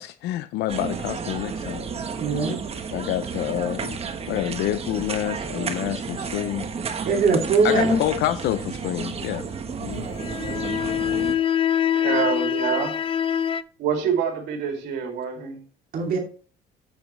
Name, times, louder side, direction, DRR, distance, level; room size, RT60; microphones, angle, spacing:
voice 1, 0.0-1.8 2.5-2.6 2.9-6.7 7.6-9.4 9.8-10.1, left 13 dB, 80° left, 0.6 m, -28 dB
sound 1, 0.7-11.3, right 5 dB, 35° right, 1.2 m, -32 dB
voice 2, 2.2-2.6 7.1-8.0 15.9-16.2, right 4 dB, 55° right, 2.6 m, -21 dB
sound 2, 10.1-13.6, left 9 dB, 30° left, 0.4 m, -24 dB
voice 3, 11.9-12.9 13.8-15.6, right 7 dB, 80° right, 2.9 m, -26 dB
9.1 x 7.5 x 3.2 m
cardioid pair, 110°, 17 cm